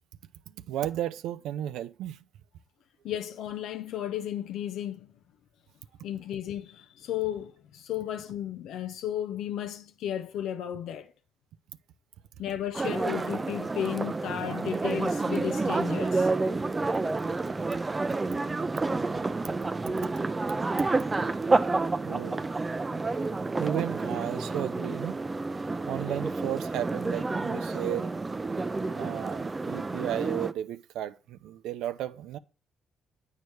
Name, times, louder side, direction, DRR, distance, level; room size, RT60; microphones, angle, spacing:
voice 1, 0.7-2.2 20.9-21.0 22.1-22.5 23.6-25.2 25.9-28.1 28.9-32.4, right 12 dB, 90° right, 0.4 m, -34 dB
voice 2, 3.0-5.1 6.0-11.1 12.4-16.3, left 10 dB, 80° left, 0.4 m, -34 dB
sound 1, 12.7-30.5, right 3 dB, 25° right, 0.4 m, -29 dB
8.2 x 4.6 x 3.1 m
cardioid pair, 90°, 0 cm